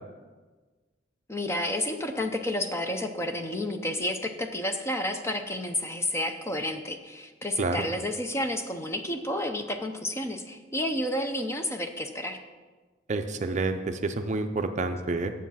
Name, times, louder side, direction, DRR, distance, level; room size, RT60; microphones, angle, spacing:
voice 1, 1.3-12.4, left 1 dB, 15° left, 5 dB, 0.6 m, -30 dB
voice 2, 13.1-15.3, right 3 dB, 35° right, 7 dB, 0.5 m, -28 dB
9.8 x 7.5 x 5.6 m, 1.3 s
head